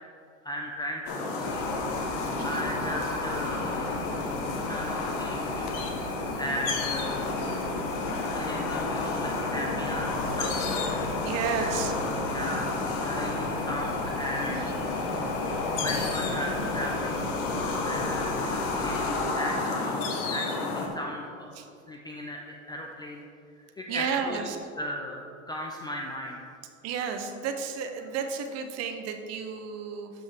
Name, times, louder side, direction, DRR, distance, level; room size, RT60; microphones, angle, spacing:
voice 1, 0.4-1.7 2.1-7.8 8.3-10.8 11.6-11.7 12.3-15.1 15.8-21.5 21.9-23.2 23.6-26.6, equal, 10° left, 0 dB, 0.4 m, -37 dB
sound 1, 1.1-20.9, left 3 dB, 50° left, 1.4 m, -30 dB
sound 2, 1.4-19.1, left 2 dB, 75° left, 1.9 m, -42 dB
voice 2, 11.2-11.9 14.5-14.9 21.6-21.7 23.9-24.6 26.8-30.1, right 6 dB, 35° right, 6 dB, 0.9 m, -32 dB
12.5 x 5.2 x 3.5 m, 2.4 s
hypercardioid pair, 110°, 42 cm